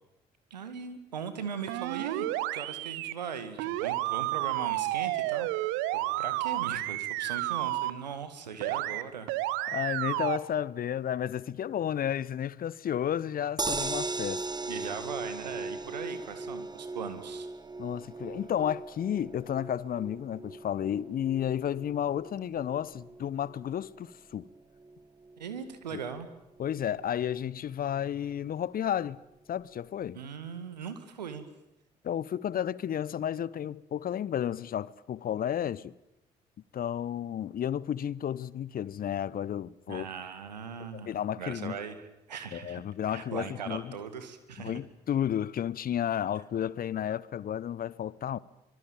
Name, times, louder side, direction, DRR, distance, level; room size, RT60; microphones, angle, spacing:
voice 1, 0.5-2.3 2.5-9.3 14.7-17.5 25.4-26.3 30.1-31.5 39.9-41.1 41.4-42.0 42.3-42.8 43.1-44.8, right 7 dB, 80° right, 2.1 m, -39 dB
sound 1, 1.7-3.1 3.6-7.9 8.6-9.0 9.3-10.4, right 17 dB, 65° right, 1.1 m, -31 dB
voice 2, 9.7-14.4 17.8-24.5 25.9-26.0 26.6-29.2 29.5-30.2 32.0-35.9 36.7-40.1 40.9-41.8 42.5-44.0 44.6-48.4, left 10 dB, 45° left, 0.9 m, -32 dB
sound 2, 13.6-25.8 26.2-26.3 26.6-26.7, right 3 dB, 20° right, 1.6 m, -39 dB
25.0 x 23.0 x 9.1 m
figure-of-eight pair, 45°, 21 cm